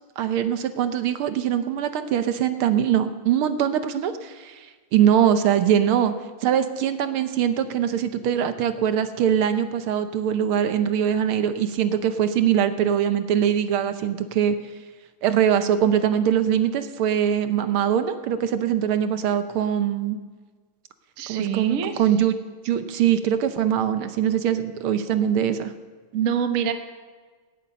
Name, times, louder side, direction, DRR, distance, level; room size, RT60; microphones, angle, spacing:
voice 1, 0.2-4.7 4.9-6.1 6.4-14.5 15.2-20.2 21.3-22.3 22.6-25.7, right 9 dB, 75° right, 10 dB, 1.7 m, -22 dB
voice 2, 21.2-22.0 26.1-26.7, right 8 dB, 50° right, 8 dB, 1.1 m, -25 dB
17.5 x 9.3 x 6.8 m, 1.4 s
omnidirectional pair, 2.4 m